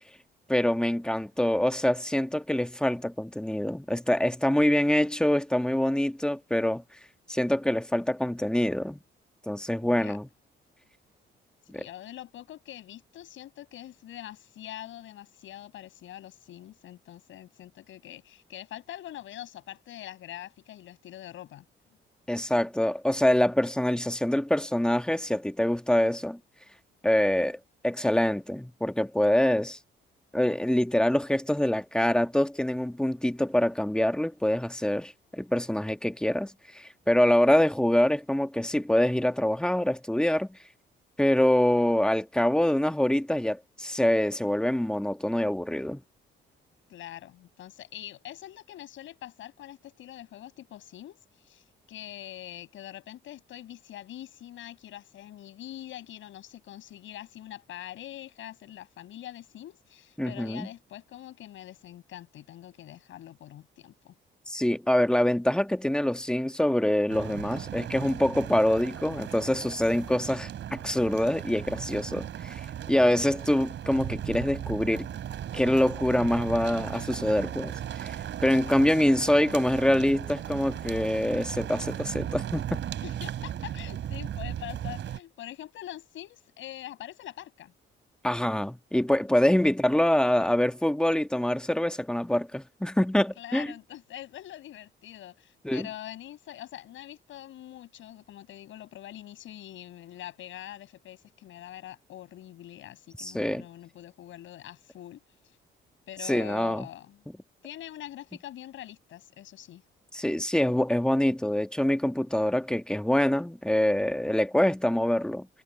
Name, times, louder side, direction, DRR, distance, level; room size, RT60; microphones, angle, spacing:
voice 1, 0.5-6.8 7.3-9.0 9.5-10.3 11.7-11.8 22.3-26.4 27.0-29.8 30.3-40.6 41.2-46.0 60.2-60.7 64.5-72.6 72.9-75.1 75.5-82.8 88.2-93.7 95.6-95.9 103.2-103.6 106.2-106.9 110.1-115.5, left 1 dB, 5° left, 1.4 m, -25 dB
voice 2, 9.8-10.2 11.7-21.6 46.9-64.1 78.7-78.8 83.0-87.7 93.4-105.6 106.1-107.2 107.6-109.8, left 12 dB, 80° left, 6.2 m, -44 dB
sound 1, 67.1-85.2, right 10 dB, 70° right, 4.3 m, -37 dB
cardioid pair, 90°, 20 cm